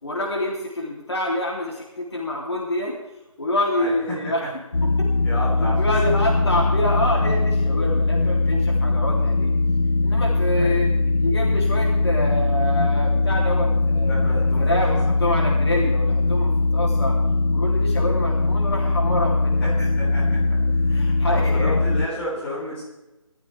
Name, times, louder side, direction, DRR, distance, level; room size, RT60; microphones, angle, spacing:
voice 1, 0.0-3.0 3.4-4.4 5.6-9.5 10.0-10.9 11.2-17.1 17.5-19.7 20.9-21.8, left 1 dB, 50° left, -3 dB, 3.5 m, -27 dB
voice 2, 3.7-4.5 5.2-6.1 10.5-10.8 14.0-15.0 19.6-21.0 21.3-22.8, equal, 5° left, -10 dB, 5.1 m, -33 dB
sound 1, 4.7-22.1, left 3 dB, 70° left, 0.7 m, -21 dB
20.0 x 14.0 x 3.6 m, 1.1 s
figure-of-eight pair, 155°, 17 cm